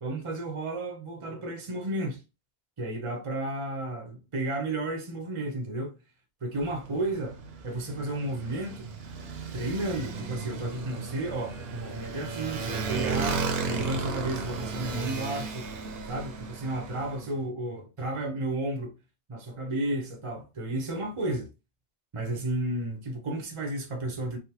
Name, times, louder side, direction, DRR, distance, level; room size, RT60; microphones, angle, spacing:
voice 1, 0.0-2.2 2.8-5.9 6.4-7.4 7.6-8.9 9.5-15.7 16.1-18.9 19.3-21.5 22.1-24.4, right 2 dB, 35° right, 0.6 m, -32 dB
Motorcycle, 6.5-17.2, right 4 dB, 65° right, 0.8 m, -35 dB
3.4 x 2.2 x 2.8 m
omnidirectional pair, 1.2 m